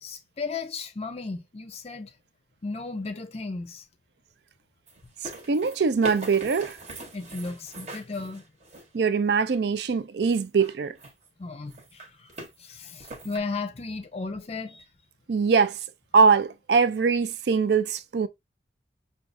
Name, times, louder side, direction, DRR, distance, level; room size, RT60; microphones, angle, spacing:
voice 1, 0.0-2.1 2.6-3.8 7.1-8.4 11.4-12.3 12.6-14.9, left 3 dB, 35° left, 0.5 m, -35 dB
sound 1, 4.9-9.0 10.3-11.3 11.7-12.5 13.0-13.4, right 1 dB, 40° right, 1.1 m, -41 dB
voice 2, 5.5-6.8 8.9-10.9 15.3-15.8 16.1-18.3, right 5 dB, 65° right, 0.4 m, -22 dB
5.9 x 2.4 x 2.5 m
head